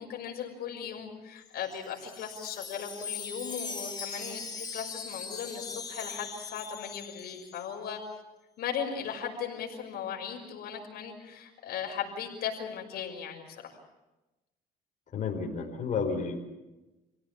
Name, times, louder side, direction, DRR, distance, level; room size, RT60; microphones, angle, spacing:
voice 1, 0.0-8.0 8.6-13.8, left 7 dB, 70° left, 2 dB, 6.1 m, -37 dB
Wind chime, 1.4-7.7, left 5 dB, 25° left, 3.2 m, -40 dB
voice 2, 15.1-16.4, left 5 dB, 45° left, -2 dB, 5.1 m, -31 dB
28.0 x 17.0 x 8.7 m, 1.0 s
cardioid pair, 110°, 17 cm